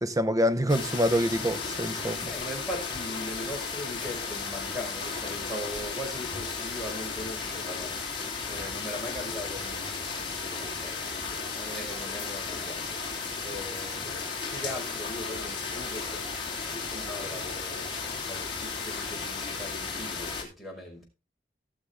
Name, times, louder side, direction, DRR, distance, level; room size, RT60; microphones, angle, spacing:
voice 1, 0.0-2.3, equal, 20° right, 0.7 m, -26 dB
sound 1, 0.7-20.4, left 4 dB, 30° left, 3.3 m, -34 dB
voice 2, 2.2-12.9 13.4-17.9 18.2-21.0, left 1 dB, ahead, 5.1 m, -40 dB
sound 2, 8.9-10.1 10.5-13.3 13.7-16.5 16.9-18.5, right 3 dB, 80° right, 4.0 m, -51 dB
18.5 x 6.7 x 3.4 m
head